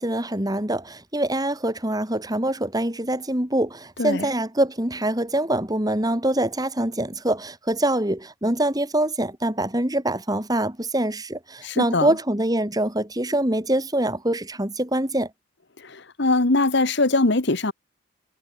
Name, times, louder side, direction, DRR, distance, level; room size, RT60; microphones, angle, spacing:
voice 1, 0.0-15.3, right 1 dB, 20° right, 2.8 m, -24 dB
voice 2, 4.0-4.3 11.6-12.1 15.8-17.7, left 2 dB, 55° left, 1.4 m, -22 dB
head